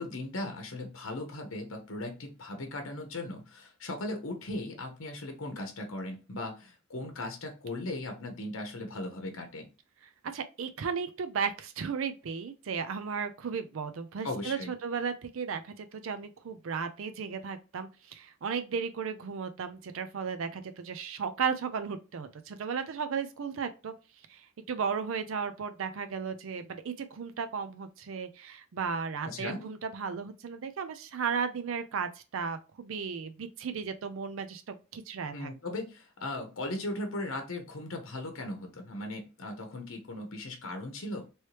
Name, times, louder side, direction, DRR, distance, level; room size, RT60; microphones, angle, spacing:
voice 1, 0.0-9.7 14.2-14.7 29.2-29.6 35.2-41.3, left 2 dB, 75° left, 0.8 m, -38 dB
voice 2, 10.3-23.9 24.3-35.5, right 6 dB, 70° right, 0.4 m, -35 dB
3.1 x 3.1 x 2.9 m
head